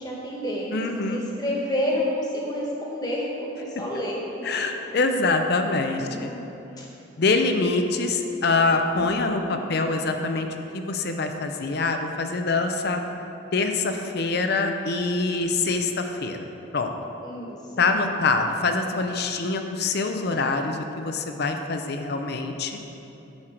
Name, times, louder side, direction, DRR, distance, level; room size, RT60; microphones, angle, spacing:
voice 1, 0.0-4.6 6.0-6.4 6.8-6.9 9.0-9.5 17.2-18.0, left 1 dB, 20° left, -3 dB, 1.4 m, -30 dB
voice 2, 0.7-1.2 4.4-6.3 7.2-10.5 10.7-13.0 13.5-16.4 16.7-16.9 17.8-22.8, left 3 dB, 55° left, 5 dB, 0.5 m, -25 dB
9.7 x 6.5 x 4.4 m, 3.0 s
head